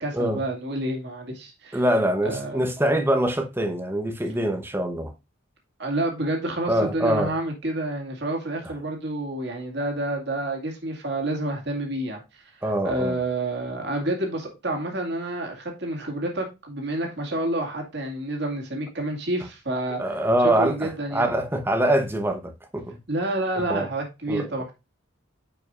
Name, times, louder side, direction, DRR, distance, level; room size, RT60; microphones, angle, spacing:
voice 1, 0.0-1.8 2.2-2.7 5.8-20.0 20.5-21.3 23.1-24.7, right 1 dB, 55° right, 2.2 m, -29 dB
voice 2, 1.7-5.1 6.7-7.3 12.6-13.2 20.0-23.0 23.6-23.9 24.3-24.5, right 1 dB, 10° right, 0.9 m, -24 dB
9.4 x 5.3 x 2.5 m
head